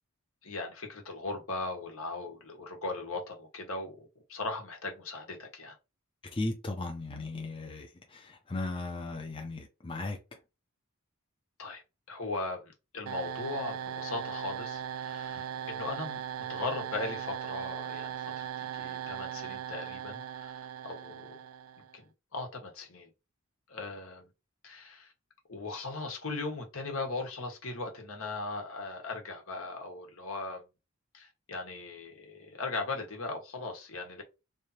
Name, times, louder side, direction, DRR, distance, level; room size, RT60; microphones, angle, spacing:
voice 1, 0.4-5.7 11.6-11.8 12.1-21.4 21.9-22.1 22.3-23.1 23.7-24.3 24.6-25.1 25.5-30.6 31.1-34.2, left 3 dB, 75° left, 1.4 m, -38 dB
voice 2, 6.3-10.4 15.3-15.4, left 2 dB, 25° left, 0.6 m, -37 dB
sound 1, 13.0-22.0, right 9 dB, 75° right, 0.3 m, -39 dB
3.3 x 2.8 x 4.2 m
head